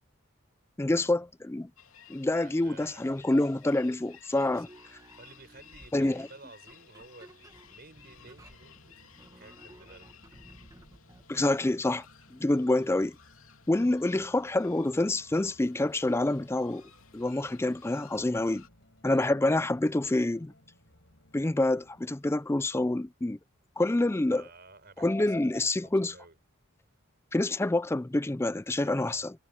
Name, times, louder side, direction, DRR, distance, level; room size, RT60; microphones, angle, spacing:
voice 1, 0.8-1.7 2.1-4.7 5.9-6.3 11.3-12.1 12.3-13.2 13.7-16.8 17.1-18.6 19.0-20.5 21.3-23.4 23.8-24.4 25.0-26.1 27.3-29.3, left 2 dB, 10° left, 0.4 m, -27 dB
sound 1, 1.8-18.7, left 8 dB, 85° left, 2.9 m, -57 dB
voice 2, 2.4-3.3 4.4-4.6 5.2-10.1 19.1-19.3 24.3-26.4 28.8-29.3, right 3 dB, 50° right, 4.5 m, -53 dB
sound 2, 4.5-11.8, right 1 dB, 15° right, 1.7 m, -56 dB
sound 3, 8.2-22.0, left 1 dB, 65° left, 7.3 m, -61 dB
head